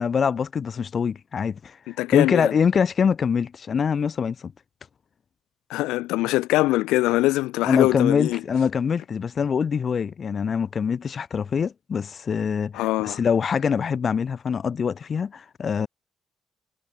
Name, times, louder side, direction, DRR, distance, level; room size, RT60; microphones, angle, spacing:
voice 1, 0.0-1.8 2.1-4.5 7.6-15.9, left 6 dB, 55° left, 7.8 m, -24 dB
voice 2, 2.0-2.5 5.7-8.4 12.7-13.2, left 18 dB, 80° left, 1.5 m, -23 dB
hypercardioid pair, 40°, 0 cm